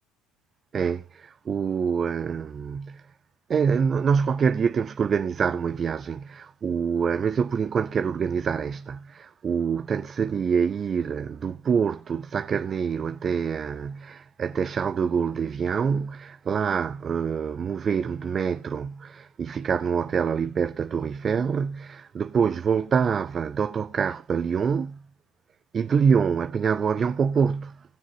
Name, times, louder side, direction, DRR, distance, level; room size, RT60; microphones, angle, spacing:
voice 1, 0.7-3.0 3.5-25.0 25.7-27.8, right 6 dB, 40° right, 0.5 m, -26 dB
18.0 x 6.9 x 3.0 m
hypercardioid pair, 70°, 0 cm